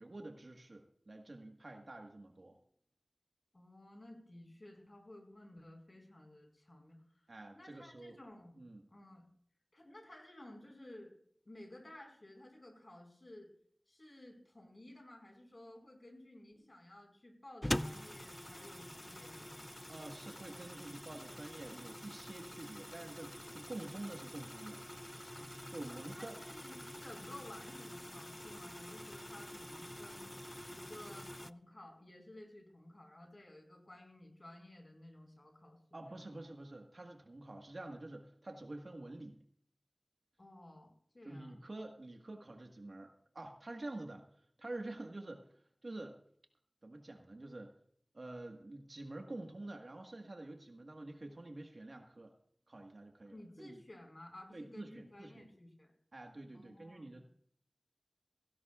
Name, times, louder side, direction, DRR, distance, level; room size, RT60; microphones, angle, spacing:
voice 1, 0.0-2.6 7.3-8.2 8.6-8.9 19.9-24.8 25.7-26.4 35.9-39.4 41.2-45.5 45.8-46.2 46.8-47.7 48.1-52.3 52.7-53.8 54.5-55.4 56.1-57.2, right 2 dB, 65° right, 3 dB, 1.5 m, -48 dB
voice 2, 3.5-7.3 7.5-8.6 8.9-9.3 9.7-11.1 11.4-13.5 13.9-19.6 25.9-30.4 30.7-36.2 40.4-41.6 53.3-55.9 56.5-57.2, left 1 dB, 50° left, 2 dB, 4.9 m, -55 dB
sound 1, 17.6-31.5, left 1 dB, 15° left, 0.4 m, -46 dB
16.5 x 16.0 x 2.4 m, 0.64 s
wide cardioid pair, 40°, 0 cm